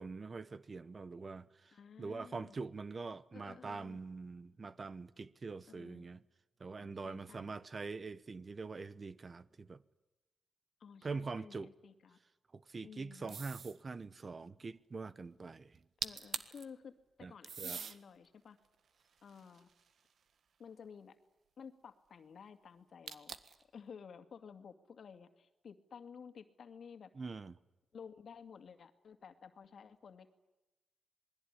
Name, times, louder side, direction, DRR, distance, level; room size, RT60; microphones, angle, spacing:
voice 1, 0.0-6.2 6.6-9.8 11.0-11.7 12.5-15.8 17.2-17.3 17.6-17.8 27.1-27.5, right 4 dB, 40° right, 1.0 m, -44 dB
voice 2, 1.7-2.6 3.3-4.0 5.7-6.1 6.8-7.6 10.8-12.2 12.8-13.4 16.0-16.9 17.2-18.6 19.2-19.7 20.6-21.2 21.6-23.4 23.7-27.1 27.9-30.3, left 6 dB, 70° left, 2.2 m, -53 dB
sound 1, 13.3-13.8 15.7-15.8 16.0-16.6 17.4-18.0 18.6-20.1 23.1-23.6, right 6 dB, 75° right, 1.6 m, -43 dB
27.0 x 21.0 x 10.0 m
cardioid pair, 100°, 0 cm